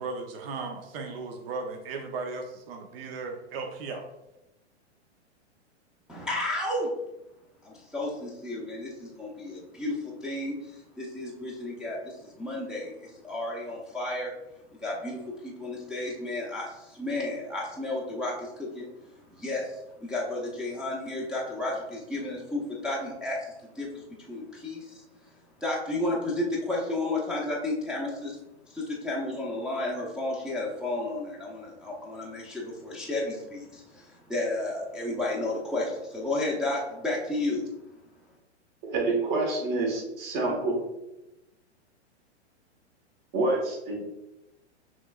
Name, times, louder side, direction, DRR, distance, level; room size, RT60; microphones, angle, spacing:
voice 1, 0.0-4.1, right 4 dB, 55° right, 3 dB, 0.8 m, -36 dB
voice 2, 6.1-6.9 7.6-14.3 14.8-18.9 19.3-25.0 25.6-28.4 28.6-37.7, left 2 dB, ahead, -5 dB, 0.6 m, -32 dB
voice 3, 38.8-40.8 43.3-44.0, right 2 dB, 40° right, -1 dB, 1.5 m, -27 dB
6.0 x 3.1 x 2.4 m, 0.93 s
hypercardioid pair, 120°, 34 cm